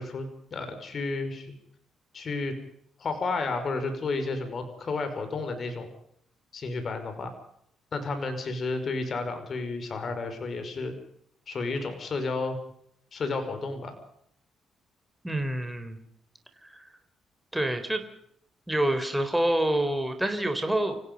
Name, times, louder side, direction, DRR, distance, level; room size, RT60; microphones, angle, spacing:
voice 1, 0.0-1.5 2.1-2.6 3.0-5.9 6.5-7.3 7.9-10.9 11.5-12.6 13.1-13.9, left 3 dB, 45° left, 7 dB, 5.4 m, -32 dB
voice 2, 15.2-16.0 16.6-16.9 17.5-18.0 18.7-21.0, right 1 dB, 5° right, 6 dB, 4.1 m, -27 dB
29.5 x 16.5 x 5.4 m, 0.71 s
cardioid pair, 90°, 0 cm